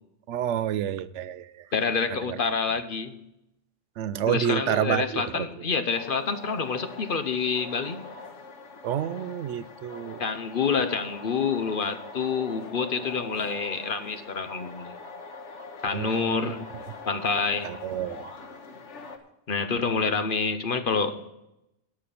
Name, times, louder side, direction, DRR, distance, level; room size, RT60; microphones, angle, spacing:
voice 1, 0.3-1.7 2.1-2.4 4.0-5.5 8.8-10.2 15.9-16.5 17.6-18.2, right 10 dB, 85° right, 16 dB, 0.9 m, -29 dB
voice 2, 1.7-3.2 4.3-8.0 10.2-14.9 15.8-16.7 17.0-17.7 19.5-21.2, left 5 dB, 50° left, 10 dB, 1.1 m, -27 dB
sound 1, 5.9-19.2, left 3 dB, 85° left, 1.6 m, -43 dB
12.5 x 5.9 x 8.5 m, 0.87 s
omnidirectional pair, 1.2 m